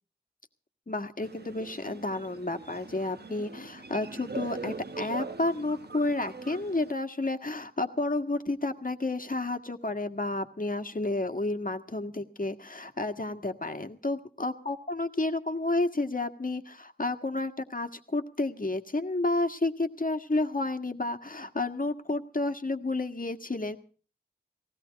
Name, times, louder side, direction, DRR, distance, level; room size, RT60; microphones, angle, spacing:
voice 1, 0.9-23.8, left 2 dB, 50° left, 7 dB, 1.7 m, -31 dB
sound 1, 1.2-6.9, right 3 dB, 70° right, 1.0 m, -41 dB
18.5 x 16.5 x 4.1 m, 0.40 s
wide cardioid pair, 45°, 18 cm